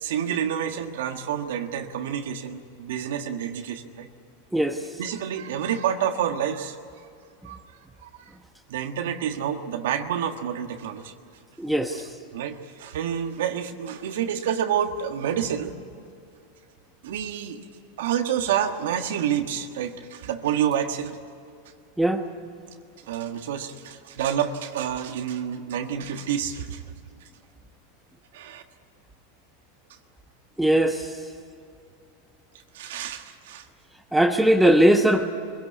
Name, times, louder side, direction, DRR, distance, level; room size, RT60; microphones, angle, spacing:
voice 1, 0.0-4.1 5.0-6.8 7.4-8.1 8.7-11.1 11.9-12.0 12.3-15.7 17.0-17.6 18.0-21.2 23.1-26.8 28.3-28.6 32.7-33.6, right 9 dB, 75° right, 5 dB, 1.5 m, -28 dB
voice 2, 11.6-12.1 22.0-22.2 30.6-31.1 34.1-35.3, right 1 dB, 5° right, 4 dB, 1.3 m, -19 dB
23.5 x 16.5 x 9.7 m, 2.5 s
hypercardioid pair, 110°, 0 cm